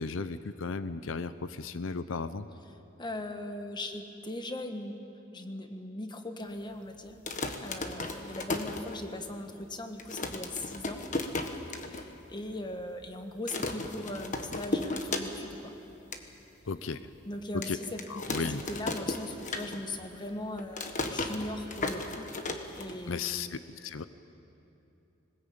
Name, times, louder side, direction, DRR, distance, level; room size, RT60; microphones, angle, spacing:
voice 1, 0.0-2.5 16.7-17.0 17.5-17.8 18.1-18.6 23.1-24.1, left 4 dB, 85° left, 13 dB, 0.7 m, -35 dB
voice 2, 3.0-5.0 5.3-7.2 7.6-11.0 11.7-15.7 17.2-18.4 18.7-22.4 22.8-23.6, left 1 dB, 25° left, 6 dB, 1.4 m, -39 dB
sound 1, 7.1-9.4 9.7-9.8 10.0-12.0 12.4-12.5 12.7-13.1 13.5-15.6 15.9-16.2 16.7-16.8 17.6-20.1 20.3-23.3, left 2 dB, 40° left, 1.4 m, -35 dB
21.0 x 20.0 x 8.7 m, 2.8 s
head